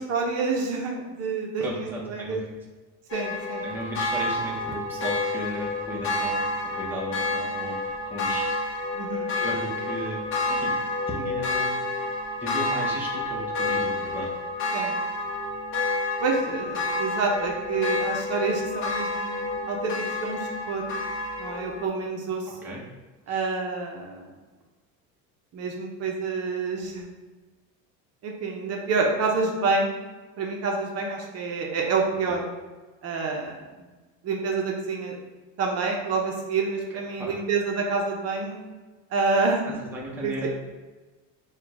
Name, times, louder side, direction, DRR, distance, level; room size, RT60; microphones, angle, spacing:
voice 1, 0.1-2.4 3.1-3.6 8.9-9.3 14.7-14.9 16.2-20.8 21.4-22.5 23.3-24.3 25.5-27.1 28.2-30.0 30.4-32.4 33.0-33.6 34.2-35.2 35.6-38.6 39.1-39.7 40.2-40.3, right 4 dB, 40° right, 0 dB, 0.7 m, -28 dB
voice 2, 1.6-2.4 3.6-6.4 6.8-8.6 9.4-10.2 10.5-10.7 11.1-11.7 12.4-14.3 22.5-22.8 23.3-23.4 32.3-32.4 37.2-37.3 39.6-40.5, equal, 5° right, -4 dB, 0.7 m, -35 dB
sound 1, 3.1-21.9, left 2 dB, 35° left, 0.9 m, -29 dB
4.5 x 2.3 x 4.6 m, 1.3 s
cardioid pair, 150°, 37 cm